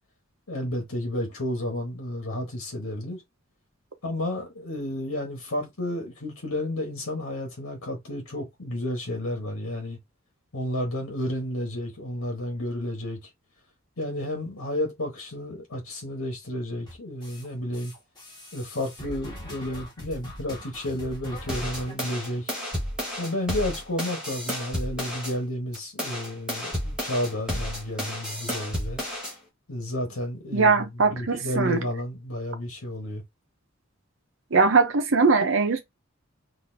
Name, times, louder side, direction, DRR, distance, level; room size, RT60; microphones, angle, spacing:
voice 1, 0.5-3.2 4.0-10.0 10.5-13.3 14.0-17.9 18.5-22.5 23.2-29.0 29.7-33.2, left 1 dB, 90° left, 1.4 m, -31 dB
sound 1, 16.9-17.5 17.7-21.9, left 1 dB, 20° left, 1.8 m, -41 dB
sound 2, 21.5-25.3 25.7-29.3, equal, 5° right, 1.5 m, -32 dB
voice 2, 30.5-31.8 34.5-35.8, right 4 dB, 65° right, 0.8 m, -21 dB
4.1 x 2.8 x 2.7 m
head